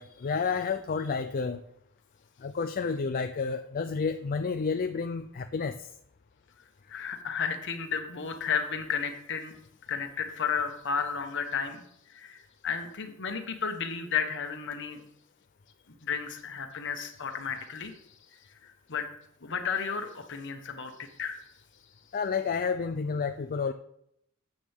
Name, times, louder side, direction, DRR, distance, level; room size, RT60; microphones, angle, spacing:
voice 1, 0.0-1.6 2.4-5.7 22.1-23.7, left 5 dB, 45° left, 8 dB, 0.4 m, -30 dB
voice 2, 6.9-9.5 9.9-15.0 16.0-17.9 18.6-19.1 19.4-21.4, left 6 dB, 60° left, 6 dB, 1.4 m, -33 dB
12.0 x 8.6 x 3.6 m, 0.75 s
head